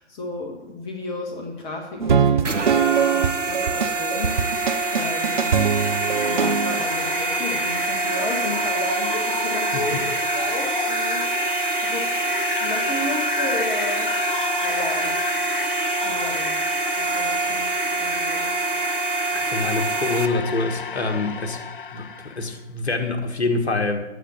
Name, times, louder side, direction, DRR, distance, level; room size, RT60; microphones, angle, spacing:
voice 1, 0.0-4.4 4.9-5.6 6.3-11.6 11.8-12.2 12.6-14.1 14.6-15.1 16.0-16.6 17.0-17.7 18.0-18.5, left 2 dB, 15° left, 1 dB, 1.3 m, -33 dB
sound 1, 2.0-6.9, right 7 dB, 45° right, 0.5 m, -22 dB
sound 2, 2.4-20.3, right 3 dB, 90° right, 0.9 m, -26 dB
sound 3, 3.9-22.5, left 6 dB, 45° left, 0.6 m, -31 dB
voice 2, 19.3-21.6 21.9-24.0, left 3 dB, 65° left, 5 dB, 1.7 m, -26 dB
9.2 x 8.1 x 7.5 m, 0.98 s
figure-of-eight pair, 135°, 36 cm